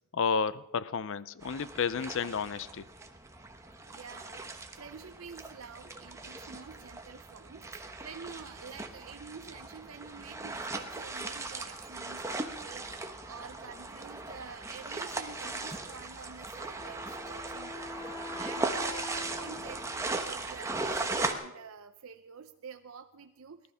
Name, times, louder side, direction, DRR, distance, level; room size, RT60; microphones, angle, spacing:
voice 1, 0.1-2.8, left 6 dB, 60° left, 17 dB, 0.5 m, -31 dB
sound 1, 1.4-21.3, right 3 dB, 15° right, 1.0 m, -38 dB
voice 2, 3.9-13.0 13.3-23.6, right 6 dB, 65° right, 7 dB, 0.7 m, -48 dB
Wind instrument woodwind instrument, 16.8-20.4, left 4 dB, 20° left, 0.8 m, -45 dB
18.0 x 12.0 x 5.7 m, 0.89 s
head